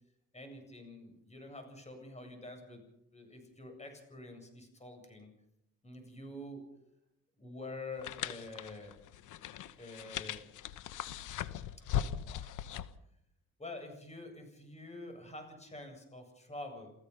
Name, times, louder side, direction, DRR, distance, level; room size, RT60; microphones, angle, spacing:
voice 1, 0.3-2.8 3.1-5.3 5.8-6.6 7.4-9.0 9.8-10.4 12.1-12.5 13.6-16.9, left 2 dB, 20° left, 5 dB, 8.0 m, -47 dB
sound 1, 8.0-12.9, left 10 dB, 85° left, 1.1 m, -39 dB
29.0 x 15.5 x 5.8 m, 0.80 s
cardioid pair, 90°, 30 cm